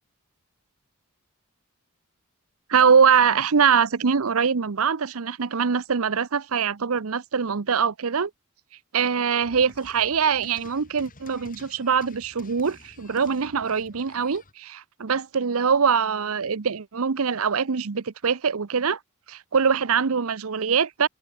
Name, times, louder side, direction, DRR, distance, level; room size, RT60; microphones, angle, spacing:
voice 1, 2.7-8.3 8.9-19.0 19.3-21.1, right 6 dB, 70° right, 0.7 m, -23 dB
sound 1, 9.4-14.5, left 2 dB, 40° left, 7.9 m, -50 dB
head